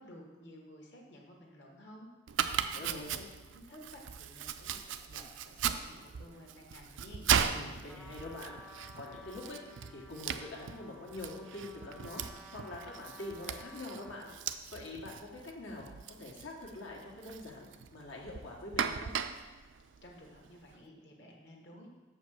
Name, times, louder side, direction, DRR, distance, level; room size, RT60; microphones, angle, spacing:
voice 1, 0.0-2.1 2.4-3.2 3.5-4.8 5.1-7.3 20.0-22.0, left 1 dB, 60° left, 0 dB, 1.4 m, -53 dB
Domestic sounds home sounds, 2.3-20.7, right 8 dB, 70° right, 0.4 m, -38 dB
voice 2, 2.7-3.1 7.5-8.6 8.9-14.3 14.7-15.8 16.2-19.1, left 2 dB, 80° left, -2 dB, 1.7 m, -45 dB
Trumpet, 7.9-14.5, left 1 dB, ahead, 0.4 m, -54 dB
6.8 x 5.3 x 6.4 m, 1.2 s
head